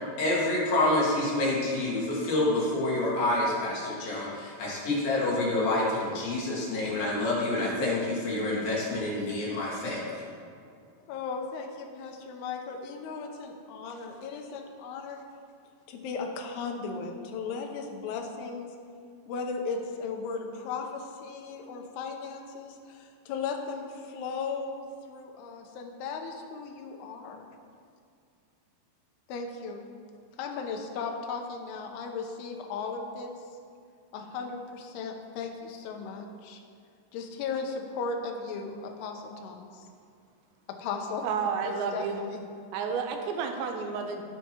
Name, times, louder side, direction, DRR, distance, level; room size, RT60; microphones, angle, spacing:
voice 1, 0.2-10.2, left 2 dB, 60° left, -6 dB, 3.2 m, -27 dB
voice 2, 11.1-15.2 15.9-18.7 19.3-24.8 25.1-27.4 29.3-29.9 30.4-33.3 34.1-36.6 37.1-39.9 40.8-41.2 41.6-42.1 42.3-42.4, left 5 dB, 75° left, 3 dB, 2.6 m, -36 dB
voice 3, 41.2-42.2 42.7-44.2, right 6 dB, 90° right, 4 dB, 3.0 m, -31 dB
16.5 x 5.7 x 2.9 m, 2.3 s
omnidirectional pair, 5.1 m